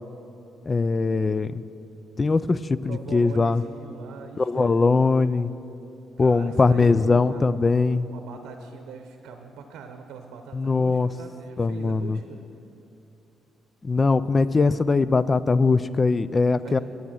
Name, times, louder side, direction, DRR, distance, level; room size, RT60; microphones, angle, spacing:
voice 1, 0.7-1.6 2.2-3.6 4.4-5.5 6.2-8.1 10.5-11.1 11.6-12.2 13.8-16.8, left 4 dB, 30° left, 17 dB, 0.3 m, -21 dB
voice 2, 2.8-4.8 6.2-7.5 8.0-12.4 14.6-14.7 16.6-16.8, right 6 dB, 85° right, 6 dB, 0.7 m, -41 dB
9.4 x 8.7 x 7.0 m, 2.8 s
cardioid pair, 90°, 0 cm